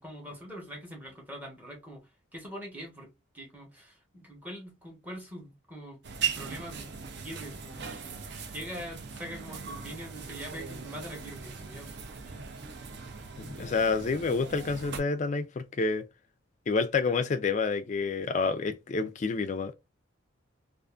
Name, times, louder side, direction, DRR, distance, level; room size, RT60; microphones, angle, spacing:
voice 1, 0.0-6.0 6.3-6.9 7.2-7.9 8.5-11.9 12.3-12.4, equal, 10° right, 0.9 m, -43 dB
sound 1, 6.0-15.0, right 6 dB, 55° right, 0.4 m, -39 dB
voice 2, 13.4-16.0 16.7-19.7, left 4 dB, 35° left, 0.3 m, -28 dB
2.5 x 2.4 x 2.3 m
head